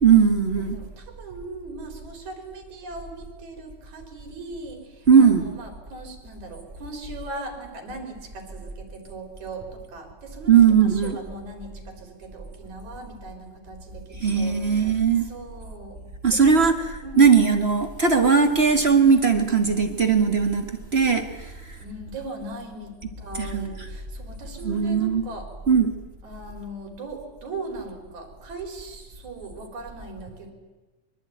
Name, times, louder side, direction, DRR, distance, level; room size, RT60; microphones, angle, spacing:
voice 1, 0.0-0.8 5.1-5.5 10.5-11.2 14.2-15.3 16.2-20.7 20.9-21.2 23.3-23.7 24.6-25.2 25.7-25.9, right 6 dB, 40° right, 5 dB, 0.9 m, -18 dB
voice 2, 0.7-16.0 16.3-16.6 17.0-17.4 21.8-25.5 26.2-30.5, right 2 dB, 65° right, 3 dB, 5.3 m, -39 dB
24.0 x 23.5 x 9.3 m, 1.2 s
omnidirectional pair, 3.7 m